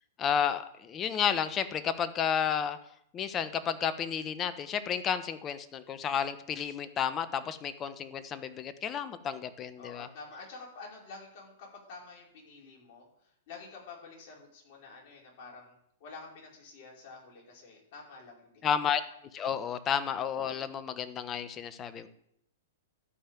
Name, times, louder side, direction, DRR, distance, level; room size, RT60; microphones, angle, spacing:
voice 1, 0.2-2.8 3.1-10.1 18.6-19.0 19.3-22.1, left 8 dB, 25° left, 13 dB, 1.1 m, -31 dB
voice 2, 9.8-15.7 16.0-18.8, left 4 dB, 50° left, -2 dB, 5.1 m, -49 dB
12.5 x 5.6 x 9.0 m, 0.74 s
hypercardioid pair, 115°, 0 cm